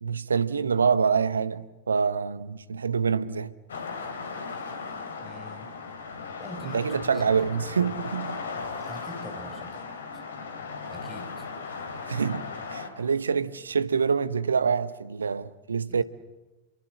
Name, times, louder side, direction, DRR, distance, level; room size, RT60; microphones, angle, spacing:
voice 1, 0.0-3.5 6.7-8.4 12.1-16.0, right 6 dB, 75° right, 1.0 m, -26 dB
sound 1, 3.7-12.9, left 4 dB, 65° left, 3.3 m, -37 dB
voice 2, 5.2-5.7 6.4-7.5 8.7-10.2 10.9-11.4 15.9-16.0, left 1 dB, 10° left, 5.3 m, -43 dB
29.5 x 23.5 x 7.8 m
figure-of-eight pair, 90°, 0 cm